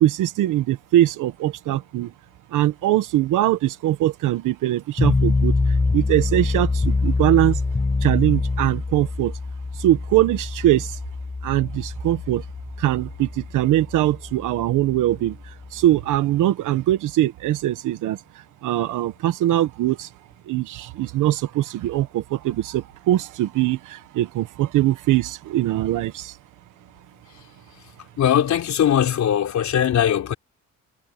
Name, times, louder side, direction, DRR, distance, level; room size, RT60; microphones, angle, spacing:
voice 1, 0.0-2.1 2.5-5.5 5.9-7.6 8.0-9.3 9.8-10.9 11.4-12.4 12.8-15.3 15.7-18.2 18.6-20.1 20.5-26.3, right 14 dB, 90° right, 1.4 m, -21 dB
sound 1, 5.0-16.1, left 3 dB, 25° left, 5.9 m, -25 dB
voice 2, 28.2-30.3, left 10 dB, 65° left, 3.8 m, -20 dB
cardioid pair, 90°, 30 cm